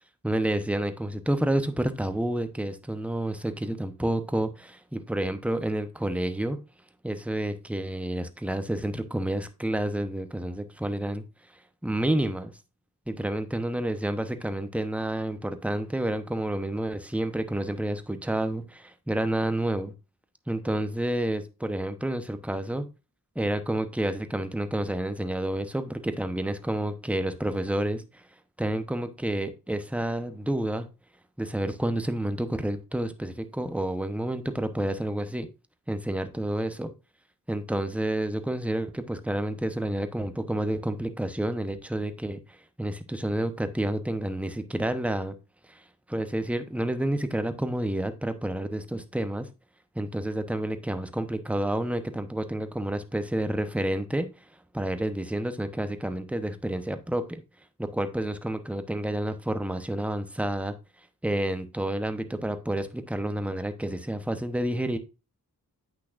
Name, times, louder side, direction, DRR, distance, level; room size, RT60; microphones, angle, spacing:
voice 1, 0.2-6.6 7.0-11.2 11.8-12.5 13.1-19.9 20.5-22.9 23.3-28.2 28.6-30.9 31.4-35.5 35.9-36.9 37.5-45.4 45.7-49.5 49.9-54.5 54.7-57.4 57.8-60.7 61.2-65.0, right 1 dB, 5° right, 0.9 m, -29 dB
8.4 x 6.1 x 2.5 m
cardioid pair, 50°, 38 cm